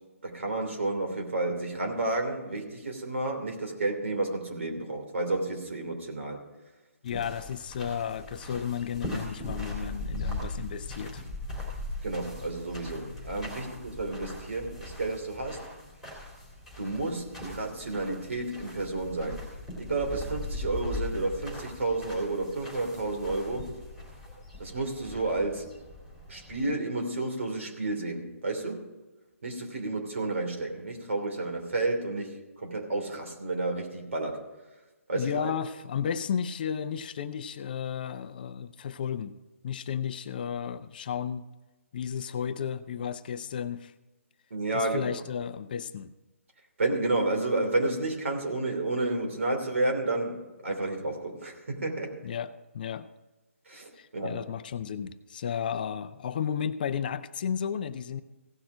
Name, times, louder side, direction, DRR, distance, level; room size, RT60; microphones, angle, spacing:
voice 1, 0.2-6.4 12.0-15.6 16.8-19.4 19.8-23.7 24.6-25.7 26.3-28.9 29.4-32.3 32.6-34.4 35.1-35.5 44.5-45.0 46.8-52.1 53.7-54.4, right 2 dB, 65° right, 3 dB, 2.9 m, -31 dB
voice 2, 7.0-11.2 35.1-39.3 39.6-41.4 41.9-43.9 44.7-46.1 52.2-53.1 54.0-58.2, left 8 dB, 40° left, 13 dB, 0.5 m, -33 dB
sound 1, 7.1-26.7, left 2 dB, 5° right, 3.2 m, -40 dB
16.5 x 6.0 x 5.0 m, 1.1 s
figure-of-eight pair, 145°, 8 cm